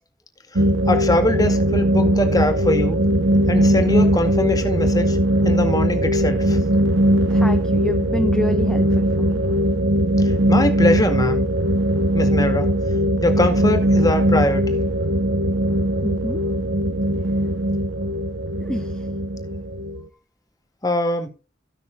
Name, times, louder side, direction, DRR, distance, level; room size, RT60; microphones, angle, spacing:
voice 1, 0.5-3.0 3.5-5.2 5.4-6.6 10.2-11.4 12.1-12.7 13.2-14.8 20.8-21.3, left 1 dB, 20° left, 2.0 m, -22 dB
sound 1, 0.6-20.0, right 1 dB, 85° right, 1.1 m, -20 dB
voice 2, 7.3-9.5 16.0-16.4 18.6-19.1, equal, 5° left, 0.7 m, -27 dB
15.5 x 6.2 x 3.9 m
head